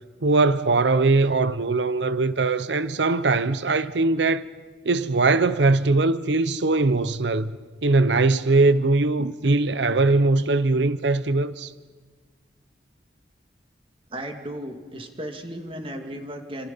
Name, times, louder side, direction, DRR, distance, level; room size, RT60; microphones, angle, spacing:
voice 1, 0.2-4.5 4.8-7.5 7.8-11.7, right 3 dB, 85° right, 0.8 m, -21 dB
voice 2, 14.1-16.7, right 1 dB, 30° right, 2.5 m, -35 dB
28.0 x 27.0 x 5.6 m
head